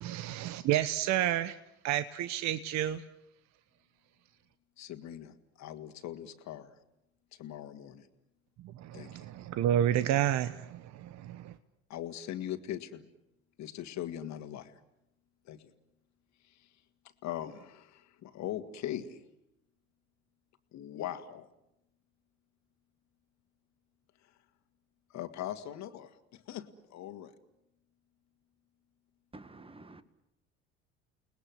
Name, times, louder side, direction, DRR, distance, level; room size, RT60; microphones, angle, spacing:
voice 1, 0.0-1.6 1.8-3.0 8.6-11.6, right 11 dB, 60° right, 13 dB, 1.0 m, -30 dB
voice 2, 4.8-6.7 7.3-8.1 8.9-9.2 11.9-13.1 13.6-14.7 15.5-15.7 16.5-16.7 17.2-19.2 20.7-21.5 25.1-27.3, left 11 dB, 60° left, 8 dB, 2.1 m, -41 dB
voice 3, 29.3-30.0, right 2 dB, 15° right, 12 dB, 1.8 m, -50 dB
30.0 x 19.5 x 7.9 m, 0.84 s
hypercardioid pair, 70°, 32 cm